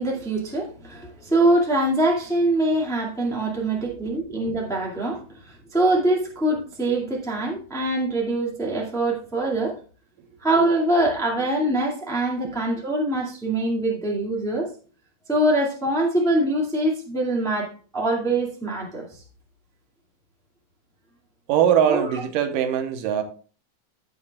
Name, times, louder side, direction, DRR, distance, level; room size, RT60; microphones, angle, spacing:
voice 1, 0.0-9.7 10.4-14.7 15.3-19.2 21.9-22.0, right 1 dB, ahead, 1.3 m, -23 dB
voice 2, 3.6-3.9 10.2-10.3 12.4-12.5 21.5-23.2, right 9 dB, 85° right, 2.6 m, -22 dB
16.0 x 5.8 x 2.3 m
omnidirectional pair, 3.8 m